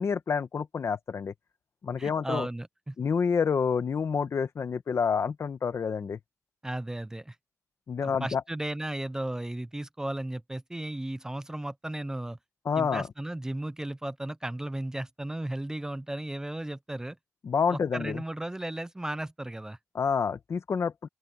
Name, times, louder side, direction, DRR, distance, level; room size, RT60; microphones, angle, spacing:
voice 1, 0.0-1.3 1.8-2.5 3.0-6.2 7.9-8.4 12.6-13.1 17.4-18.2 19.9-21.1, left 6 dB, 55° left, 1.1 m, -28 dB
voice 2, 2.0-2.9 6.6-7.4 8.0-12.4 12.8-17.2 17.7-19.8, right 1 dB, 10° right, 0.6 m, -35 dB
open air
wide cardioid pair, 175°, 6 cm